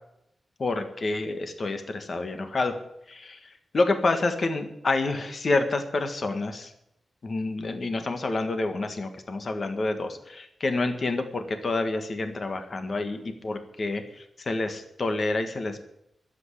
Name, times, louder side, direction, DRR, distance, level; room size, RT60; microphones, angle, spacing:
voice 1, 0.6-2.7 3.1-6.7 7.2-15.9, left 2 dB, 40° left, 7 dB, 1.5 m, -28 dB
12.0 x 8.1 x 9.9 m, 0.79 s
wide cardioid pair, 155°, 0 cm